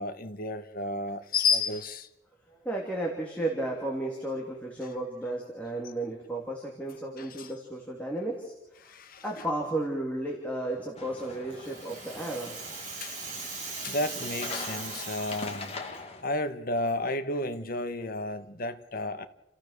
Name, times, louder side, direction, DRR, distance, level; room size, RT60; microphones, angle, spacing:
voice 1, 0.0-2.1 7.2-7.5 8.8-9.4 13.0-13.2 13.8-15.7 16.2-19.3, left 3 dB, 50° left, 1.3 m, -32 dB
voice 2, 2.6-8.9 9.2-12.6, right 1 dB, 5° left, 3.0 m, -33 dB
sound 1, 11.0-16.2, left 3 dB, 30° left, 1.8 m, -42 dB
Rattle (instrument), 11.2-16.0, right 4 dB, 40° right, 6.1 m, -39 dB
29.5 x 15.0 x 6.8 m
head